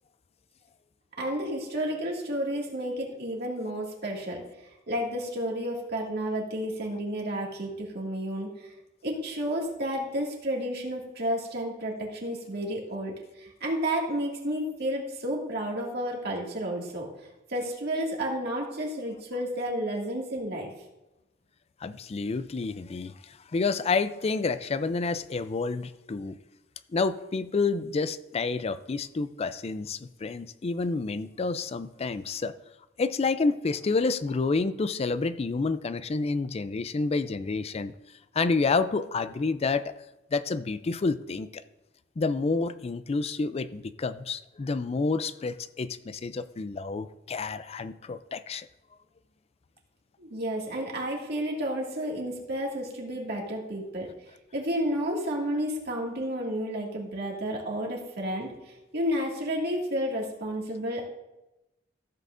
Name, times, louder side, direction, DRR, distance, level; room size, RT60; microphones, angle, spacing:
voice 1, 1.2-4.4 4.9-8.7 9.0-17.1 17.5-20.7 50.2-54.1 54.5-61.1, equal, 55° right, -1 dB, 2.0 m, -31 dB
voice 2, 21.8-26.4 26.9-32.5 33.0-37.9 38.3-39.9 40.3-41.6 42.2-48.7, left 4 dB, 30° left, 14 dB, 0.4 m, -29 dB
14.5 x 7.7 x 2.5 m, 0.97 s
head